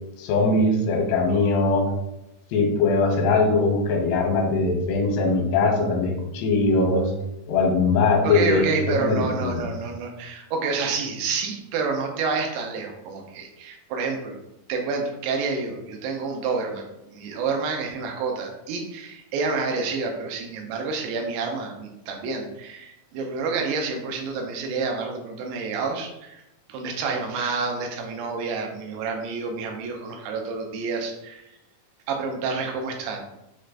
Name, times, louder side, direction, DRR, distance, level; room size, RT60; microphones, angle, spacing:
voice 1, 0.2-1.9 2.5-7.1 7.5-9.6, left 3 dB, 85° left, 2 dB, 2.7 m, -21 dB
voice 2, 8.2-14.4 14.7-26.4 26.7-31.5 32.1-33.2, right 4 dB, 90° right, 2 dB, 2.8 m, -29 dB
6.3 x 3.2 x 2.5 m, 0.88 s
omnidirectional pair, 4.7 m